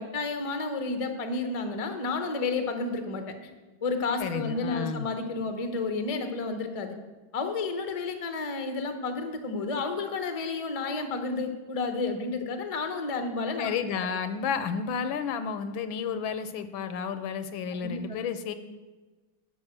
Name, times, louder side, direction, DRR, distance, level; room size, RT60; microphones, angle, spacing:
voice 1, 0.0-3.3 3.8-7.0 7.3-13.7 17.8-18.0, left 3 dB, 40° left, 7 dB, 0.4 m, -31 dB
voice 2, 4.2-5.1 13.6-18.5, left 6 dB, 80° left, 11 dB, 1.4 m, -31 dB
11.5 x 5.3 x 7.4 m, 1.2 s
omnidirectional pair, 2.2 m